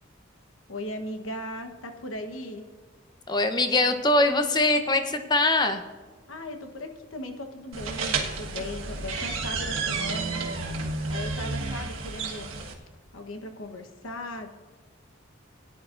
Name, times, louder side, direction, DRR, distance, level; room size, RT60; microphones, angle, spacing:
voice 1, 0.7-2.7 6.3-12.5 13.1-14.5, left 1 dB, 85° left, 6 dB, 1.1 m, -38 dB
voice 2, 3.3-5.8, left 2 dB, 20° left, 7 dB, 0.7 m, -22 dB
sound 1, 7.7-12.7, right 4 dB, 85° right, 1.5 m, -31 dB
17.5 x 10.0 x 2.5 m, 1.5 s
head